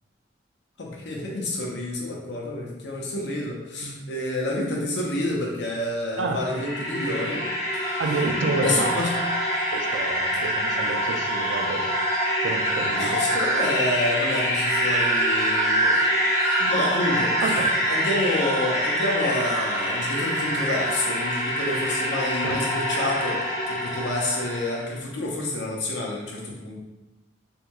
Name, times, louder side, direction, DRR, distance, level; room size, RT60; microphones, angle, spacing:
voice 1, 0.8-7.4 7.7-7.9 8.6-9.1 13.0-16.0 16.7-17.3 17.9-23.4 23.7-26.8, left 2 dB, 65° left, -2 dB, 0.7 m, -28 dB
sound 1, 6.2-24.8, equal, 35° left, 0.9 m, -25 dB
voice 2, 8.0-9.3 9.7-11.8 12.4-13.2 16.6-16.7 17.4-17.7 22.4-22.6, right 3 dB, 80° right, 3 dB, 0.4 m, -29 dB
3.6 x 2.9 x 2.2 m, 1.0 s
head